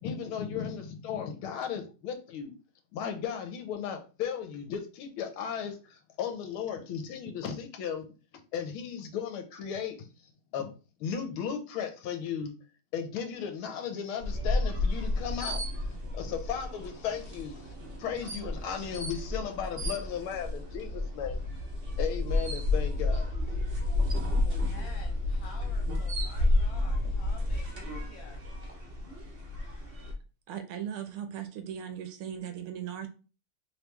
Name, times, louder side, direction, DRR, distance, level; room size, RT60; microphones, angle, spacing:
voice 1, 0.0-2.5 2.9-8.1 8.5-10.1 10.5-10.7 11.0-12.5 12.9-17.7 18.0-21.4 22.0-23.3, left 7 dB, 80° left, 6 dB, 1.5 m, -35 dB
sound 1, 14.2-30.1, left 2 dB, 40° right, 0.8 m, -31 dB
voice 2, 24.3-28.5, left 4 dB, 65° left, 2 dB, 1.6 m, -50 dB
voice 3, 30.5-33.1, right 9 dB, 80° right, 7 dB, 1.5 m, -38 dB
3.6 x 3.0 x 3.3 m, 0.34 s
omnidirectional pair, 2.4 m